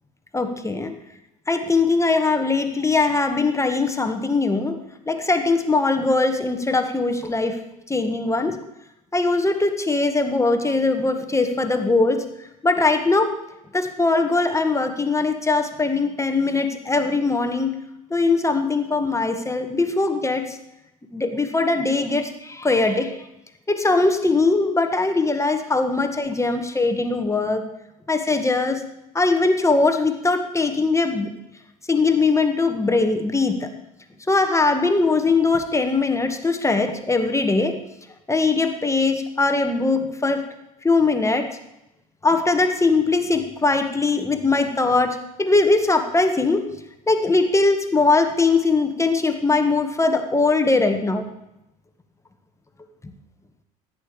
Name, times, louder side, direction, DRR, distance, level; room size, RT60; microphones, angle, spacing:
voice 1, 0.3-0.9 1.5-4.8 5.1-7.6 7.9-8.6 9.1-12.2 12.6-13.3 13.7-17.8 18.1-20.6 21.1-23.1 23.7-27.6 28.1-28.8 29.1-31.3 31.9-33.7 34.3-37.8 38.3-40.4 40.8-41.5 42.2-46.7 47.1-51.2, left 3 dB, 15° left, 6 dB, 1.7 m, -21 dB
16.0 x 9.2 x 5.1 m, 0.87 s
hypercardioid pair, 70°, 19 cm